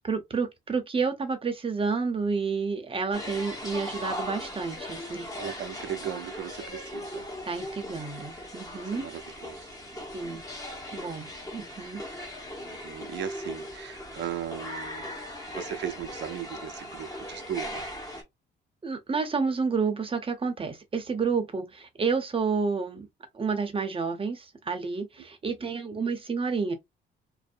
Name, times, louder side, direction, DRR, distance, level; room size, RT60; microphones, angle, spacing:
voice 1, 0.0-5.3 7.5-9.1 10.1-10.4 10.9-12.0 18.8-23.1 23.3-26.7, right 5 dB, 25° right, 0.7 m, -30 dB
sound 1, 3.1-18.2, left 1 dB, 15° left, 1.0 m, -39 dB
voice 2, 5.4-7.3 8.9-10.4 12.6-15.2 15.5-17.8 25.6-25.7, right 9 dB, 60° right, 0.5 m, -37 dB
2.6 x 2.0 x 2.5 m
cardioid pair, 90°, 20 cm